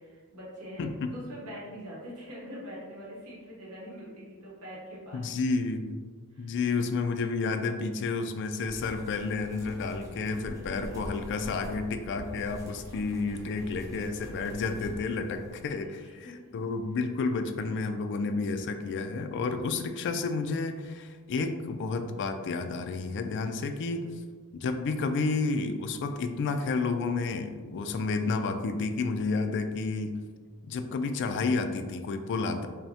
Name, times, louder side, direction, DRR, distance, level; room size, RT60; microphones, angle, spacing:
voice 1, 0.0-5.2 6.3-6.5 9.6-9.7 10.4-11.2 12.7-13.9 15.4-16.4 23.7-24.0 32.5-32.7, equal, 80° right, -5 dB, 1.1 m, -45 dB
voice 2, 0.8-1.1 5.1-6.1 6.4-24.1 24.6-30.2 30.7-32.7, left 4 dB, 55° left, 7 dB, 0.3 m, -31 dB
sound 1, 8.6-15.6, equal, 15° right, 0.8 m, -44 dB
5.6 x 2.1 x 2.8 m, 1.5 s
head